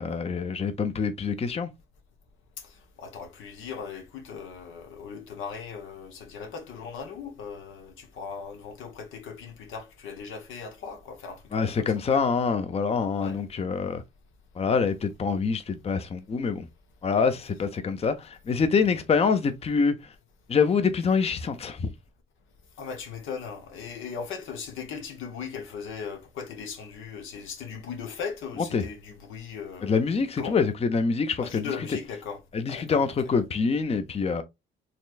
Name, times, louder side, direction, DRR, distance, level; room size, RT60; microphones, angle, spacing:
voice 1, 0.0-1.7 11.5-14.0 14.6-16.7 17.0-20.1 20.5-21.9 28.6-28.9 29.8-32.0 32.5-34.4, left 5 dB, 30° left, 0.6 m, -25 dB
voice 2, 3.0-11.4 11.7-11.9 13.2-13.4 18.9-19.0 22.8-29.9 30.4-30.5 31.4-32.4 32.7-33.0, left 6 dB, 85° left, 1.0 m, -38 dB
4.2 x 3.2 x 2.4 m
cardioid pair, 90°, 20 cm